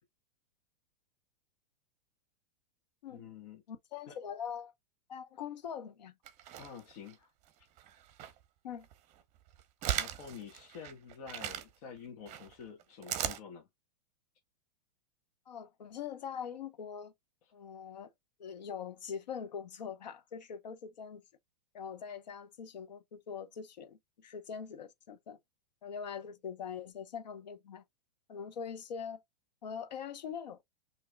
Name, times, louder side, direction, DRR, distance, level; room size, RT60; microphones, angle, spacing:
voice 1, 3.1-3.6 4.1-4.2 6.6-7.3 7.6-7.7 9.9-13.7, left 7 dB, 55° left, 1.2 m, -48 dB
voice 2, 3.7-4.7 5.1-6.2 8.6-8.9 15.5-17.1 17.5-18.1 18.4-21.2 21.7-25.4 25.8-27.8 28.3-29.2 29.6-30.6, left 7 dB, 85° left, 0.9 m, -43 dB
sound 1, 6.3-7.1 7.8-8.4 8.8-11.6 12.3-13.4, right 11 dB, 35° right, 0.8 m, -38 dB
6.1 x 2.9 x 2.3 m
hypercardioid pair, 135°, 21 cm